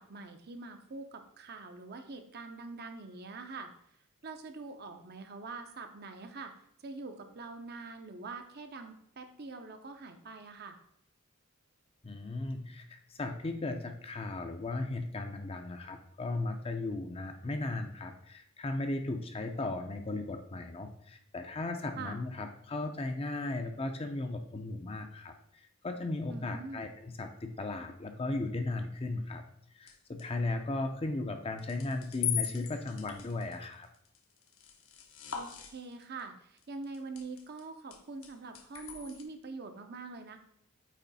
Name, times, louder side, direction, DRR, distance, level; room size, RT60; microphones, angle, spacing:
voice 1, 0.0-3.7 4.2-6.5 6.8-10.8 22.0-22.2 26.3-26.8 35.3-40.4, right 3 dB, 45° right, 6 dB, 0.6 m, -44 dB
voice 2, 12.0-29.5 29.8-33.9, left 2 dB, 25° left, 6 dB, 0.5 m, -36 dB
sound 1, 29.9-30.3 31.6-36.2 36.6-37.6 37.9-39.2, left 9 dB, 65° left, 0.8 m, -39 dB
8.4 x 3.1 x 4.1 m, 0.70 s
head